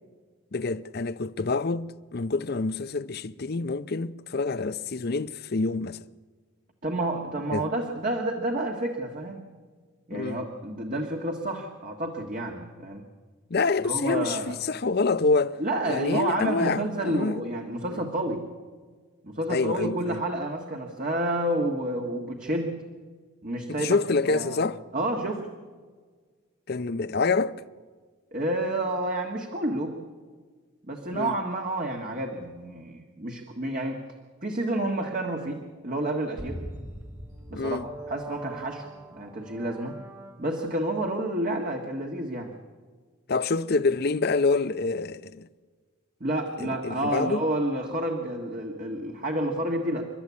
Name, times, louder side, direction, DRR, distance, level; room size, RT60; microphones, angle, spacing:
voice 1, 0.5-6.0 7.5-7.7 10.1-10.4 13.5-15.6 15.9-17.4 17.9-18.0 19.5-20.2 23.7-24.8 26.7-27.5 31.1-31.3 37.5-37.9 43.3-45.5 46.6-47.4, left 3 dB, 45° left, 0.6 m, -27 dB
voice 2, 6.8-9.5 10.1-13.0 13.8-14.5 15.6-18.4 19.2-22.7 23.4-24.0 24.3-24.6 24.9-25.4 28.3-30.0 30.9-34.0 34.4-36.6 37.5-40.0 40.4-42.5 46.2-50.1, right 1 dB, 40° right, 1.6 m, -29 dB
sound 1, 36.4-40.8, right 1 dB, 15° right, 1.8 m, -41 dB
29.0 x 12.5 x 8.4 m
head